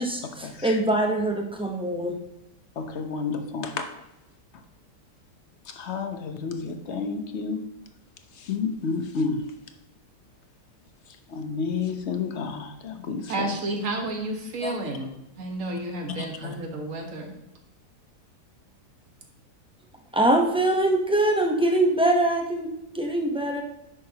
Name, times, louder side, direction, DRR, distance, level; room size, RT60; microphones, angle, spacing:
voice 1, 0.0-2.2 20.1-23.6, right 1 dB, 5° right, 2 dB, 0.5 m, -23 dB
voice 2, 2.8-3.9 5.7-7.6 8.4-9.5 11.3-13.5 14.6-14.8 16.4-16.5, left 5 dB, 50° left, 7 dB, 1.0 m, -30 dB
voice 3, 13.3-15.1 15.4-17.3, right 2 dB, 55° right, 2 dB, 1.7 m, -31 dB
10.0 x 6.3 x 2.9 m, 0.89 s
omnidirectional pair, 1.7 m